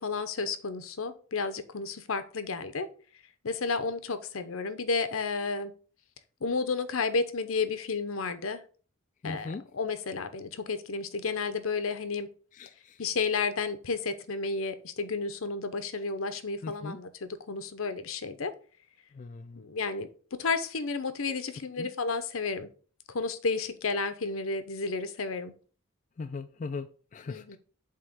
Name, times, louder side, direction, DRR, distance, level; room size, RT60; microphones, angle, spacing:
voice 1, 0.0-2.9 3.4-5.7 6.4-8.6 9.2-12.3 13.0-18.5 19.6-22.7 23.1-25.5 27.3-27.6, left 4 dB, 80° left, 0.8 m, -32 dB
voice 2, 9.2-9.6 12.5-13.0 16.6-17.0 19.1-19.6 21.8-21.9 26.2-27.6, left 4 dB, 35° left, 0.3 m, -39 dB
7.5 x 3.0 x 6.0 m
head